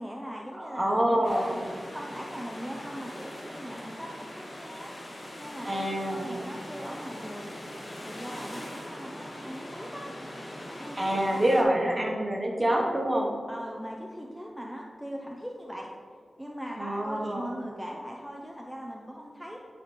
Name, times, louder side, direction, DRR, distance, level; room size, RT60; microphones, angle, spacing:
voice 1, 0.0-1.5 1.9-4.9 5.4-7.6 8.0-10.1 10.7-11.4 12.0-12.2 13.5-15.9 16.4-19.6, equal, ahead, -1 dB, 0.7 m, -40 dB
voice 2, 0.6-1.6 5.6-6.3 11.0-13.3 16.8-17.5, right 1 dB, 25° right, -1 dB, 1.4 m, -26 dB
sound 1, 1.2-11.6, left 1 dB, 45° left, 1.5 m, -41 dB
12.0 x 4.2 x 3.4 m, 2.1 s
wide cardioid pair, 65°, 0 cm